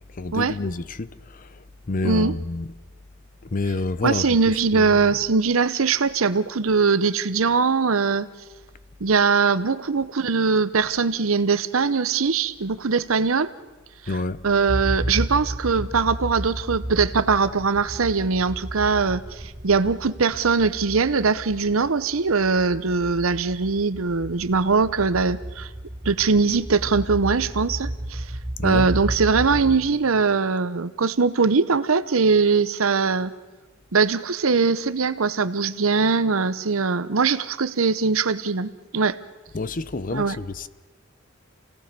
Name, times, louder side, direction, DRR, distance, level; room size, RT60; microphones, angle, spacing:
voice 1, 0.2-1.5 1.9-2.8 3.5-4.4 4.7-5.1 14.1-14.4 28.6-28.9 39.5-40.7, left 2 dB, 40° left, 0.7 m, -28 dB
voice 2, 2.0-2.4 4.0-8.3 9.0-13.5 14.4-25.7 26.0-28.3 28.6-33.3 33.9-39.2 40.1-40.4, right 4 dB, 80° right, 0.9 m, -21 dB
sound 1, 14.7-30.3, right 1 dB, 5° left, 4.4 m, -32 dB
28.0 x 17.5 x 6.8 m
head